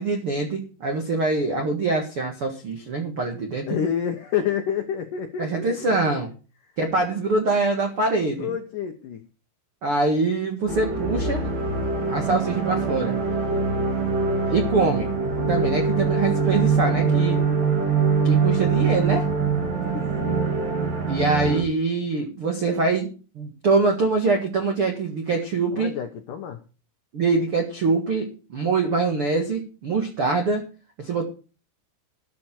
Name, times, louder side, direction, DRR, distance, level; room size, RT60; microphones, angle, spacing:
voice 1, 0.0-3.7 5.4-6.3 6.8-8.6 9.8-11.5 12.1-13.2 14.5-15.1 15.5-17.4 18.2-19.3 21.1-25.9 27.1-30.6 31.0-31.2, right 3 dB, 85° right, 3 dB, 1.2 m, -24 dB
voice 2, 3.7-6.2 8.4-9.2 16.5-17.7 19.8-20.5 25.7-26.6, left 8 dB, 80° left, 5 dB, 1.9 m, -29 dB
sound 1, 10.7-21.6, right 4 dB, 50° right, 3.7 m, -23 dB
13.0 x 11.5 x 4.4 m, 0.35 s
omnidirectional pair, 5.6 m